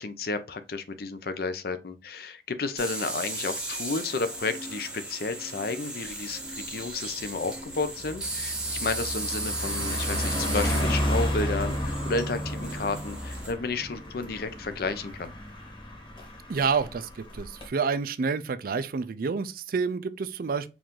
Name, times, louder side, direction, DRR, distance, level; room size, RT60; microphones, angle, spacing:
voice 1, 0.0-15.3, left 3 dB, 60° left, 0.6 m, -32 dB
sound 1, 2.8-13.5, right 2 dB, 5° right, 0.9 m, -36 dB
Car passing by, 6.1-6.3 6.7-17.7, equal, 30° left, 1.3 m, -32 dB
voice 2, 16.5-20.7, right 5 dB, 55° right, 0.4 m, -28 dB
4.7 x 2.6 x 3.6 m
head